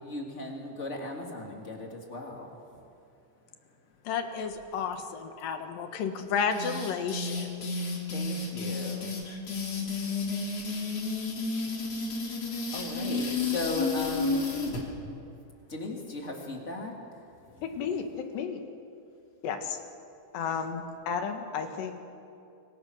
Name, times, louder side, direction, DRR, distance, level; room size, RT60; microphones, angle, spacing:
voice 1, 0.0-2.6 8.1-9.1 12.7-14.4 15.7-17.0 17.4-17.8, left 2 dB, 20° left, 0 dB, 2.7 m, -37 dB
voice 2, 4.1-7.6, left 6 dB, 65° left, 6 dB, 2.9 m, -32 dB
sound 1, 6.5-14.8, left 3 dB, 40° left, 3.7 m, -32 dB
voice 3, 17.6-18.6 19.4-19.8 20.3-22.0, left 6 dB, 85° left, 5 dB, 3.9 m, -33 dB
28.5 x 23.0 x 6.5 m, 2.7 s
omnidirectional pair, 4.8 m